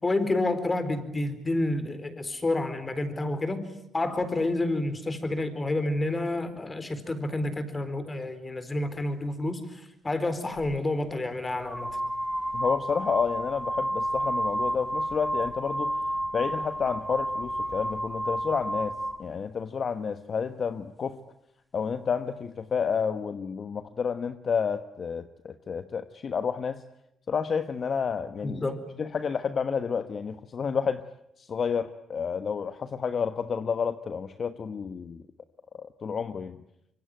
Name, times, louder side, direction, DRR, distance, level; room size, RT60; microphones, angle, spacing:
voice 1, 0.0-3.6 3.9-11.9 28.4-28.8, left 2 dB, 25° left, 12 dB, 4.3 m, -29 dB
sound 1, 10.6-10.7 11.5-19.3, equal, 5° right, 1.2 m, -31 dB
voice 2, 12.5-15.9 16.3-21.2 21.7-26.8 27.3-28.6 29.0-31.0 31.4-35.2 35.8-36.6, left 6 dB, 50° left, 10 dB, 1.2 m, -30 dB
26.0 x 23.5 x 9.2 m, 0.80 s
cardioid pair, 90°, 0 cm